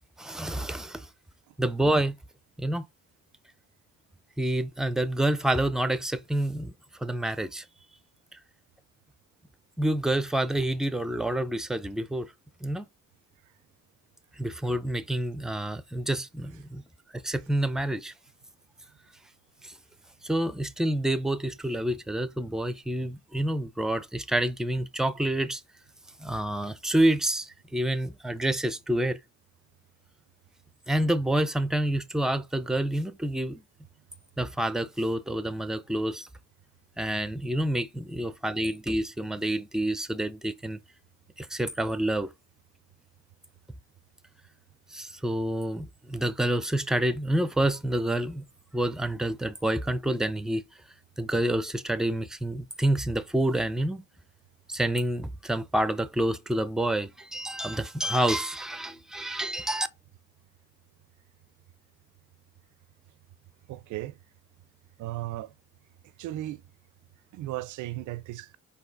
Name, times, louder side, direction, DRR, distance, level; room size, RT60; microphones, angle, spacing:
voice 1, 0.2-1.1 1.6-2.2 2.6-2.9 4.4-6.7 7.0-7.6 9.8-12.3 12.6-12.8 14.4-16.8 17.1-18.1 19.6-19.7 20.2-25.6 26.2-29.2 30.9-33.6 34.4-36.3 37.0-40.8 41.4-42.3 44.9-48.4 48.7-50.6 51.2-54.0 54.7-59.9, right 1 dB, ahead, 0.4 m, -28 dB
voice 2, 63.7-64.2 65.0-65.5 66.2-66.6 67.3-68.6, right 15 dB, 75° right, 0.5 m, -36 dB
4.2 x 2.8 x 3.8 m
cardioid pair, 90°, 30 cm